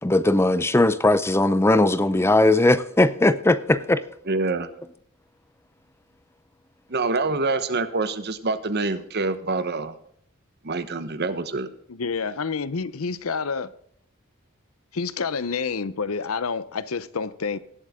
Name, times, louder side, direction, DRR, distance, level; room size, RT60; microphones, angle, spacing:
voice 1, 0.0-4.0, left 2 dB, 10° left, 0.5 m, -19 dB
voice 2, 4.3-4.7 6.9-9.9 10.6-11.7, right 3 dB, 50° right, 1.1 m, -26 dB
voice 3, 11.9-13.7 14.9-17.6, left 5 dB, 80° left, 0.7 m, -28 dB
19.0 x 8.0 x 3.7 m
head